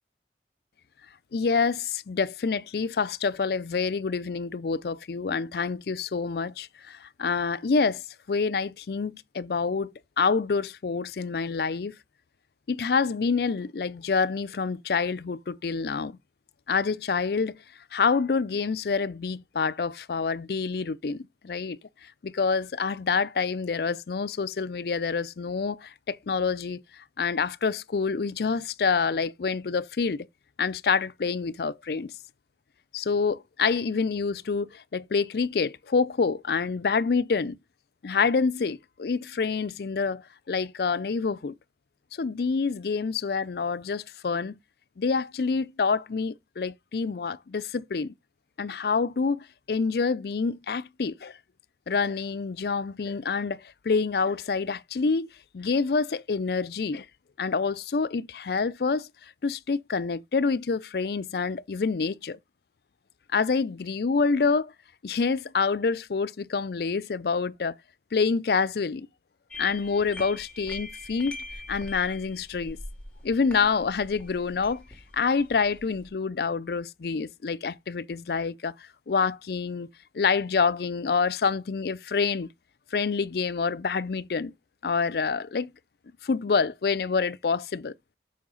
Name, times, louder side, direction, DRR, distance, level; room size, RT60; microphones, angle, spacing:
voice 1, 1.3-8.0 8.3-11.9 12.7-16.2 16.7-17.6 17.9-21.8 22.2-26.8 27.2-30.3 30.6-32.1 32.9-37.6 38.0-41.5 42.1-44.6 45.0-48.1 48.6-51.3 51.9-55.3 55.5-57.1 57.4-59.1 59.4-62.4 63.3-64.7 65.0-67.8 68.1-69.1 69.6-71.4 71.7-72.8 73.2-74.8 75.1-78.7 79.1-79.9 80.1-82.5 82.9-84.5 84.8-85.7 86.2-87.9, left 5 dB, 55° left, 0.4 m, -27 dB
sound 1, 69.5-76.1, left 2 dB, 5° left, 3.1 m, -42 dB
8.5 x 5.6 x 3.9 m
head